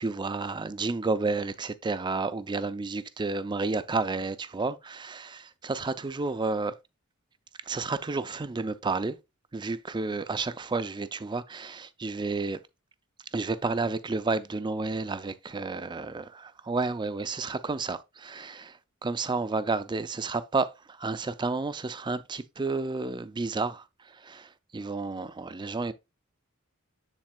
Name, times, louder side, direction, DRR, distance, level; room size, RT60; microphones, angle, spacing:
voice 1, 0.0-6.7 7.7-9.2 9.5-12.6 13.3-25.9, right 3 dB, 20° right, 0.4 m, -31 dB
7.4 x 7.3 x 2.3 m
head